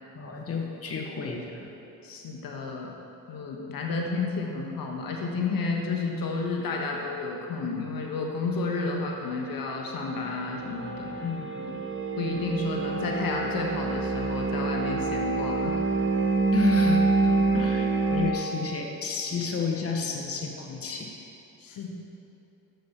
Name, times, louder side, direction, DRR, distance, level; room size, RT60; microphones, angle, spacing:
voice 1, 0.1-1.7 11.2-11.7 16.5-21.1, left 4 dB, 40° left, 0 dB, 1.3 m, -31 dB
voice 2, 2.0-2.9 3.3-11.1 11.6-11.7 12.2-15.8 21.6-21.9, left 3 dB, 65° left, 0 dB, 1.4 m, -31 dB
sound 1, 9.8-18.3, right 3 dB, 30° right, 1.0 m, -27 dB
7.6 x 7.2 x 6.9 m, 3.0 s
supercardioid pair, 65°, 38 cm